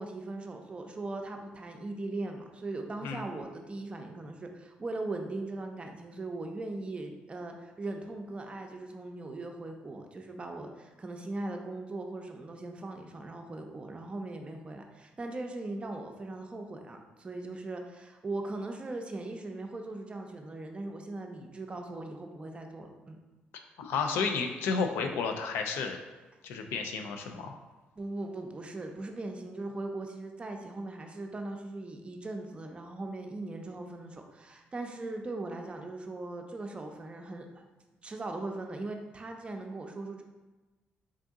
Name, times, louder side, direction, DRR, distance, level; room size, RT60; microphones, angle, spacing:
voice 1, 0.0-23.2 28.0-37.6 38.0-40.2, right 2 dB, 30° right, 3 dB, 0.5 m, -39 dB
voice 2, 23.8-26.0 26.4-27.6, left 5 dB, 85° left, 4 dB, 0.4 m, -32 dB
3.7 x 2.6 x 3.5 m, 1.2 s
cardioid pair, 80°, 4 cm